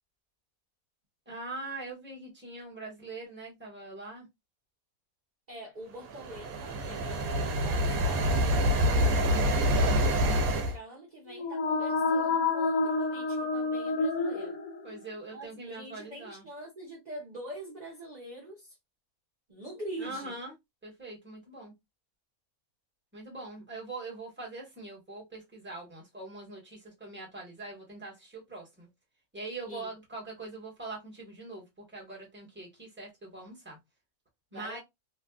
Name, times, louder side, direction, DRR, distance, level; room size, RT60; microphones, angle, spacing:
voice 1, 1.3-4.3 9.2-9.6 14.8-16.4 20.0-20.5 20.8-21.7 23.1-28.9 29.3-33.8 34.5-34.8, right 2 dB, 10° right, 1.2 m, -42 dB
voice 2, 5.5-9.0 9.3-14.6 15.3-18.8 19.5-20.4 29.7-29.9 34.5-34.8, right 1 dB, 35° right, 0.9 m, -45 dB
sound 1, 6.1-10.7, equal, 75° right, 1.1 m, -26 dB
sound 2, 11.3-15.1, left 3 dB, 80° left, 1.2 m, -29 dB
3.1 x 2.4 x 2.3 m
omnidirectional pair, 1.5 m